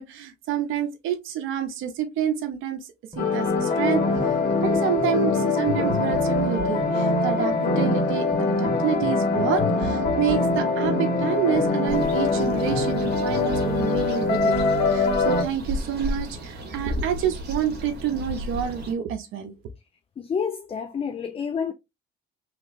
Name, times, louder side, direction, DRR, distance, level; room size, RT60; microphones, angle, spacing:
voice 1, 0.0-2.9 3.2-4.1 4.6-8.3 8.6-19.5, right 9 dB, 85° right, 0.6 m, -28 dB
sound 1, 3.1-14.4, left 2 dB, 20° right, 1.8 m, -36 dB
sound 2, 3.2-15.4, left 3 dB, 55° left, 1.8 m, -23 dB
sound 3, 11.9-18.9, equal, 55° right, 1.4 m, -34 dB
voice 2, 20.2-21.7, left 6 dB, 30° left, 0.4 m, -29 dB
3.2 x 2.9 x 2.6 m
cardioid pair, 90°, 20 cm